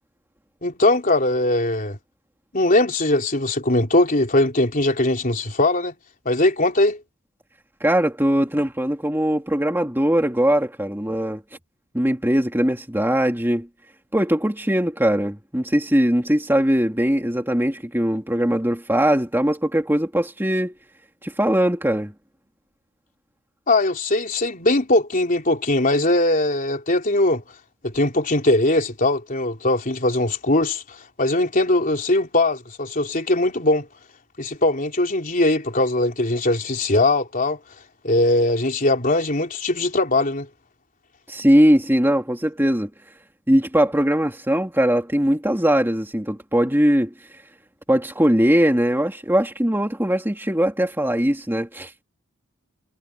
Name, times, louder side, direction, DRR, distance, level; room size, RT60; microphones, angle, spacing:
voice 1, 0.6-2.0 2.5-5.9 6.3-7.0 23.7-27.4 27.8-33.9 34.4-37.6 38.0-40.5, left 2 dB, 40° left, 3.8 m, -20 dB
voice 2, 7.8-11.4 11.9-13.7 14.1-20.7 21.2-22.1 41.3-42.9 43.5-47.1 47.9-52.0, equal, 10° right, 2.6 m, -20 dB
head